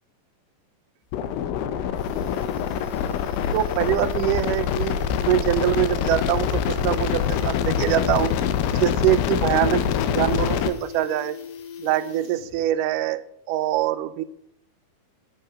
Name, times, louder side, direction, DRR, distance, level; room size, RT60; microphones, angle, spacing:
sound 1, 1.0-1.1 1.4-1.5 1.8-12.6 12.9-13.0, left 7 dB, 70° left, 2.5 m, -40 dB
sound 2, 1.1-10.7, left 8 dB, 85° left, 2.5 m, -25 dB
voice 1, 3.5-5.0 5.3-8.3 8.7-11.4 11.8-13.2 13.5-14.2, right 14 dB, 80° right, 12 dB, 2.0 m, -24 dB
8.5 x 7.0 x 5.5 m, 0.73 s
omnidirectional pair, 4.0 m